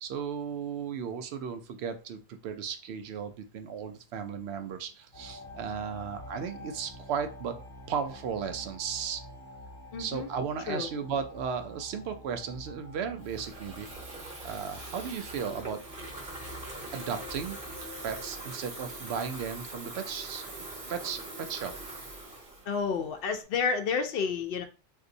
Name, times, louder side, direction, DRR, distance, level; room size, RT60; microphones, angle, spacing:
voice 1, 0.0-7.5 7.9-9.2 10.0-13.9 14.4-15.8 16.9-17.6 18.0-20.4 20.9-21.7, right 7 dB, 80° right, 8 dB, 0.8 m, -35 dB
sound 1, 5.1-18.3, left 1 dB, 25° left, 1.0 m, -48 dB
voice 2, 9.9-10.3 10.7-10.9 22.7-24.6, left 5 dB, 65° left, 7 dB, 0.7 m, -30 dB
Water tap faucet / Fill (with liquid), 13.2-23.4, right 2 dB, 55° right, 1.2 m, -43 dB
3.8 x 2.6 x 2.5 m, 0.34 s
omnidirectional pair, 1.1 m